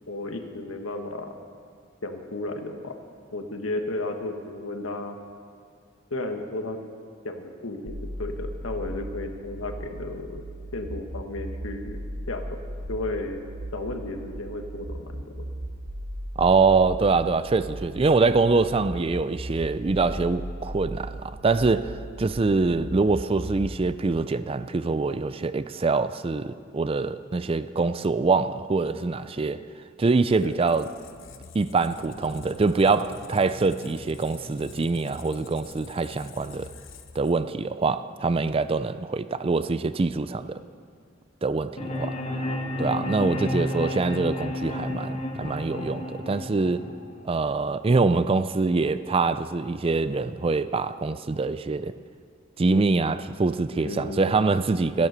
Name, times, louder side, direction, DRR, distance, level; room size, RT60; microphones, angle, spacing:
voice 1, 0.1-1.3 2.0-2.9 3.3-5.2 6.1-6.8 7.2-10.4 10.7-12.0 12.3-12.4 12.9-13.4 13.7-15.4 30.4-30.6 53.8-54.4, left 2 dB, 85° left, 1.4 m, -33 dB
sound 1, 7.9-23.9, right 1 dB, 65° right, 1.1 m, -37 dB
voice 2, 16.4-29.6 30.0-30.9 31.5-36.7 37.1-40.6 41.4-42.1 42.8-46.8 47.2-51.9 52.6-55.1, right 3 dB, 30° right, 0.4 m, -24 dB
Squeak, 30.2-37.8, left 4 dB, 70° left, 0.9 m, -46 dB
sound 2, 41.8-47.8, left 1 dB, 30° left, 1.0 m, -31 dB
15.5 x 11.0 x 6.7 m
head